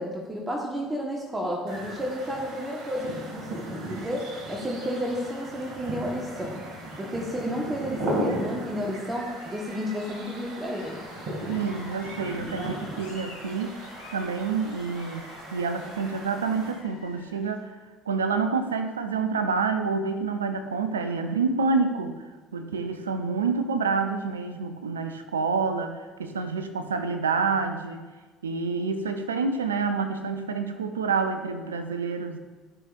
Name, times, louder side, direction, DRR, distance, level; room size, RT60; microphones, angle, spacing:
voice 1, 0.0-6.6 7.0-11.1 12.5-12.7, equal, 20° right, -1 dB, 1.4 m, -32 dB
sound 1, 1.7-16.7, right 1 dB, 55° right, 2.5 m, -36 dB
sound 2, 9.0-17.6, left 3 dB, 80° left, 1.8 m, -49 dB
voice 2, 11.5-13.8 14.1-15.3 15.5-17.7 18.1-22.2 22.5-28.0 28.4-32.4, right 4 dB, 85° right, 8 dB, 0.6 m, -28 dB
12.5 x 5.9 x 2.6 m, 1.3 s
hypercardioid pair, 60°, 0 cm